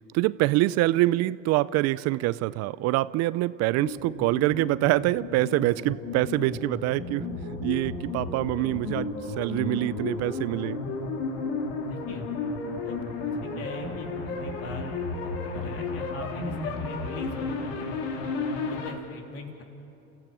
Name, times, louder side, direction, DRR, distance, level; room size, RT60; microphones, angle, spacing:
voice 1, 0.1-10.8, right 18 dB, 60° right, 18 dB, 0.5 m, -25 dB
sound 1, 3.8-18.9, left 3 dB, 80° left, 2.8 m, -33 dB
voice 2, 11.8-12.2 12.8-18.0 18.4-19.6, left 3 dB, 50° left, 2 dB, 3.4 m, -41 dB
29.0 x 15.0 x 7.4 m, 2.8 s
supercardioid pair, 110°, 30 cm